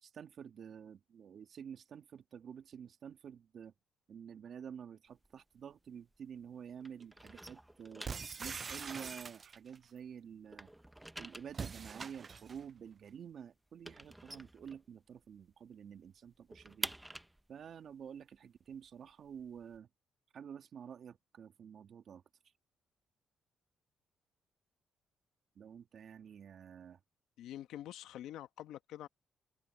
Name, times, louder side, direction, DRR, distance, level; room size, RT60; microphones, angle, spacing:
voice 1, 0.0-3.7 4.1-8.1 8.4-10.7 11.2-16.9 17.5-19.9 20.3-22.2 25.6-27.0, right 8 dB, 60° right, 2.1 m, -50 dB
sound 1, 5.1-6.5 6.8-10.0 10.3-15.3 15.6-15.7 16.0-19.8, right 1 dB, 5° right, 0.7 m, -48 dB
sound 2, 8.0-9.8 11.5-12.6, right 5 dB, 40° right, 0.3 m, -43 dB
voice 2, 27.4-29.1, left 12 dB, 85° left, 1.0 m, -46 dB
cardioid pair, 90°, 0 cm